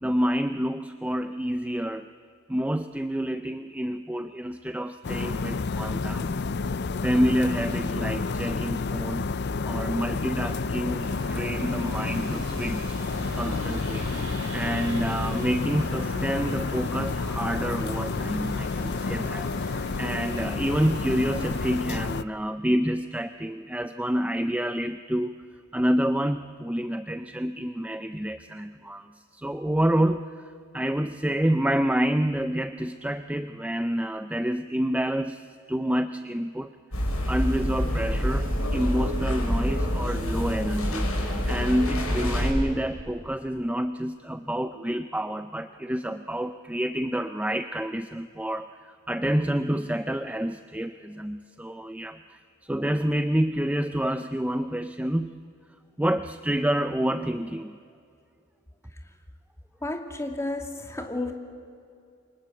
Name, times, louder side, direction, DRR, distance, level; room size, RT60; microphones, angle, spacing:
voice 1, 0.0-2.1 2.5-6.3 7.0-9.3 9.7-14.1 14.5-25.4 25.7-55.4 56.0-57.8, equal, 5° right, 10 dB, 0.6 m, -28 dB
sound 1, 5.0-22.2, left 4 dB, 55° left, 0.6 m, -30 dB
sound 2, 11.0-21.8, right 2 dB, 70° right, 3.0 m, -40 dB
sound 3, 36.9-42.5, equal, 85° left, 6.2 m, -27 dB
voice 2, 59.8-61.3, left 2 dB, 15° left, 4 dB, 2.4 m, -32 dB
28.5 x 24.5 x 7.8 m, 2.4 s
head